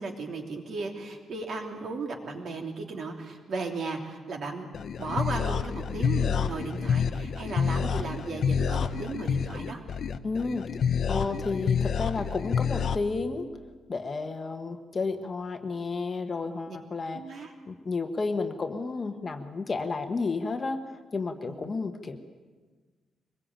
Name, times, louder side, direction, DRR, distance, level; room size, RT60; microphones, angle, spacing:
voice 1, 0.0-4.7 5.0-9.8 16.7-16.8 17.1-17.5 21.4-21.6, right 3 dB, 50° right, 3 dB, 3.1 m, -35 dB
sound 1, 4.7-13.0, left 7 dB, 45° left, 0.8 m, -28 dB
voice 2, 10.2-10.7 11.1-13.5 13.9-22.2, left 4 dB, 25° left, 6 dB, 1.3 m, -32 dB
23.5 x 21.0 x 9.0 m, 1.4 s
wide cardioid pair, 175°, 0 cm